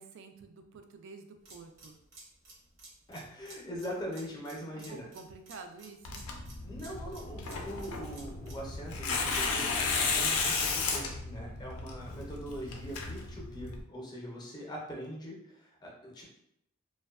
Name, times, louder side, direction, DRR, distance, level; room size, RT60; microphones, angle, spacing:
voice 1, 0.0-2.0 4.6-6.3, right 4 dB, 60° right, 6 dB, 0.3 m, -49 dB
sound 1, 1.4-8.7, right 2 dB, 80° right, 0.8 m, -54 dB
voice 2, 3.1-5.1 6.6-16.2, equal, 20° left, -2 dB, 0.5 m, -42 dB
Tearing, 6.0-13.8, left 4 dB, 85° left, 0.4 m, -34 dB
2.6 x 2.2 x 2.3 m, 0.78 s
head